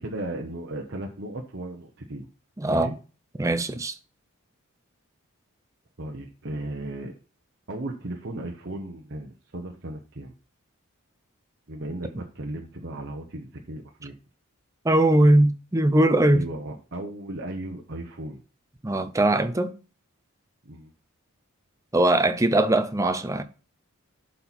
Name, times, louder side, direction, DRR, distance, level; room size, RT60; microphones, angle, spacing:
voice 1, 0.0-2.3 2.6-3.0 6.0-7.1 7.7-10.3 11.7-14.1 16.3-18.4 20.6-20.9, right 1 dB, 50° right, 0.9 m, -36 dB
voice 2, 2.6-2.9 3.4-4.0 14.8-16.4 18.8-19.8 21.9-23.4, right 1 dB, 15° right, 0.5 m, -20 dB
11.5 x 4.4 x 4.1 m
head